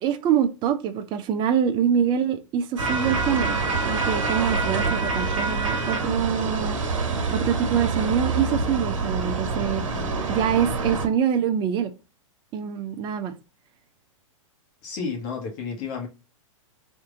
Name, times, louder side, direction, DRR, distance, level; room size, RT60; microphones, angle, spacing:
voice 1, 0.0-3.6 3.9-6.8 7.3-9.8 10.3-11.9 12.5-13.4, right 8 dB, 25° right, 0.5 m, -25 dB
sound 1, 2.8-11.1, right 3 dB, 70° right, 1.4 m, -26 dB
voice 2, 14.8-16.1, left 5 dB, 40° left, 1.3 m, -31 dB
3.6 x 2.7 x 3.7 m
hypercardioid pair, 125°, 17 cm